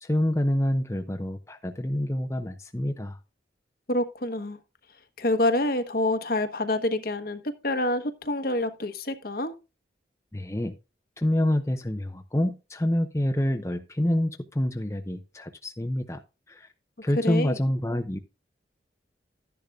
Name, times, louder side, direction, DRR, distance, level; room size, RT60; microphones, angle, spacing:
voice 1, 0.0-3.2 10.3-10.8 11.2-16.2 16.5-16.7 17.0-18.2, left 1 dB, 15° left, 0.7 m, -27 dB
voice 2, 3.9-4.6 5.2-9.5 17.2-17.5, left 1 dB, 50° left, 1.1 m, -27 dB
12.0 x 10.5 x 2.4 m
head